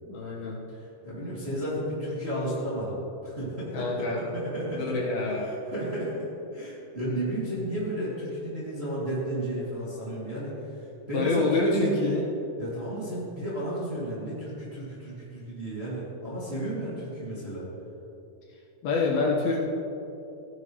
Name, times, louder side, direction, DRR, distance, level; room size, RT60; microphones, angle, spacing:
voice 1, 0.0-0.6 3.7-4.2 4.7-5.5 11.1-12.2 18.8-19.6, left 3 dB, 70° left, -4 dB, 3.2 m, -26 dB
voice 2, 0.7-5.0 5.3-12.1 12.6-17.7, right 1 dB, 20° right, -9 dB, 2.4 m, -33 dB
15.5 x 10.5 x 3.2 m, 2.9 s
omnidirectional pair, 4.7 m